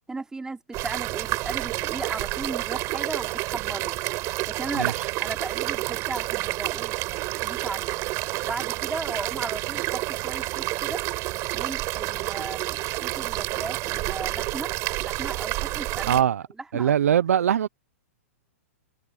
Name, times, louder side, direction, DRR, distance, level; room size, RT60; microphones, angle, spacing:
voice 1, 0.1-3.9 4.5-7.0 7.4-7.9 8.4-11.0 11.5-12.8 13.0-14.7 15.0-16.3 16.7-17.2, right 3 dB, 10° right, 3.4 m, -36 dB
sound 1, 0.7-16.2, right 20 dB, 35° right, 6.2 m, -29 dB
voice 2, 16.0-16.4 16.7-17.7, right 9 dB, 80° right, 1.0 m, -21 dB
hypercardioid pair, 130°, 8 cm